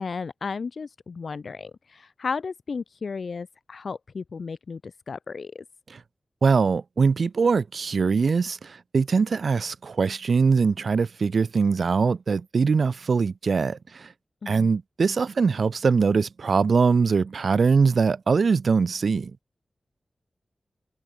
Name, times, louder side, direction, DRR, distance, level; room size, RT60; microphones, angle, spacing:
voice 1, 0.0-5.6 14.4-14.7, left 5 dB, 75° left, 3.1 m, -34 dB
voice 2, 6.4-8.6 8.9-13.8 14.5-19.3, right 5 dB, 75° right, 0.5 m, -22 dB
cardioid pair, 40°, 0 cm